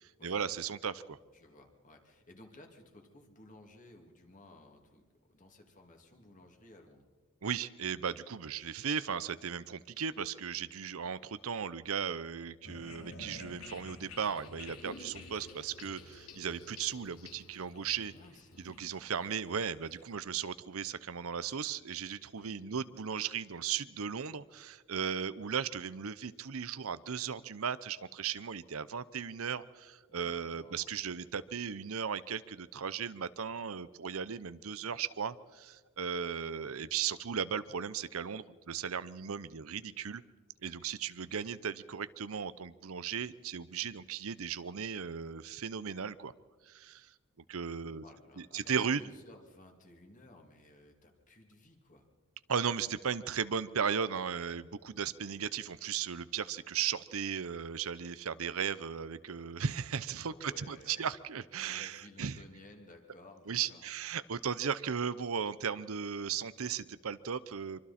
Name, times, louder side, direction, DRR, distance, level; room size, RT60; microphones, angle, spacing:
voice 1, 0.2-1.2 7.4-18.1 18.6-40.2 40.6-46.3 46.7-47.1 47.5-48.0 48.5-49.0 52.5-62.4 63.5-67.8, right 7 dB, 70° right, 15 dB, 0.7 m, -36 dB
voice 2, 1.3-7.1 18.1-18.6 22.4-22.9 30.1-31.0 48.0-52.1 60.3-61.1 61.6-63.9 64.4-64.5, left 2 dB, 35° left, 3 dB, 2.6 m, -56 dB
sound 1, 12.6-20.1, left 2 dB, 75° left, 2.7 m, -50 dB
24.5 x 24.5 x 4.3 m, 1.4 s
head